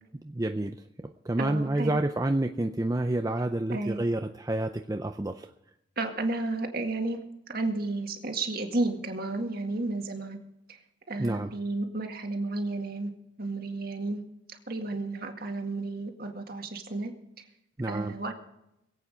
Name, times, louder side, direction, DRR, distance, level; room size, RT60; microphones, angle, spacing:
voice 1, 0.2-0.8 1.2-5.5 11.2-11.5 17.8-18.1, right 1 dB, 15° right, 6 dB, 0.4 m, -29 dB
voice 2, 1.4-2.0 3.7-4.0 6.0-7.2 7.5-10.4 10.7-10.8 11.1-13.1 13.4-14.2 14.5-17.1 17.9-18.3, right 2 dB, 50° right, 4 dB, 1.9 m, -32 dB
22.0 x 8.5 x 5.0 m, 0.84 s
head